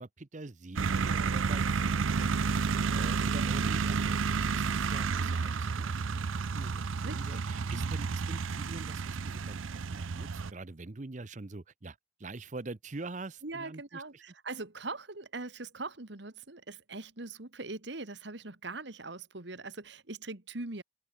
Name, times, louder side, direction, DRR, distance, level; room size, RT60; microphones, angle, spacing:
voice 1, 0.0-14.2, right 2 dB, 35° right, 0.7 m, -45 dB
sound 1, 0.8-10.5, right 5 dB, 85° right, 0.6 m, -31 dB
voice 2, 2.7-3.4 7.0-7.4 7.7-8.0 13.4-20.8, right 3 dB, 60° right, 1.7 m, -42 dB
open air
head